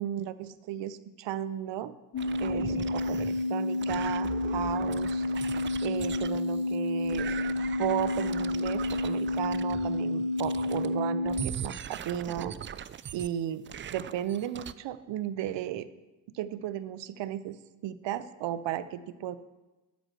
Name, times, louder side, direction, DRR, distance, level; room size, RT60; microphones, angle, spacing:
voice 1, 0.0-1.9 2.4-5.5 5.8-7.4 7.8-12.5 13.1-13.6 13.9-15.9 16.3-17.6 17.8-19.4, right 11 dB, 65° right, 14 dB, 0.7 m, -34 dB
sound 1, 2.1-11.4, left 2 dB, 40° left, 1.2 m, -30 dB
sound 2, 2.2-6.8 7.0-10.0 10.4-11.0 11.3-13.3 13.7-14.7, right 9 dB, 30° right, 0.3 m, -40 dB
8.1 x 6.1 x 7.7 m, 1.1 s
hypercardioid pair, 45°, 48 cm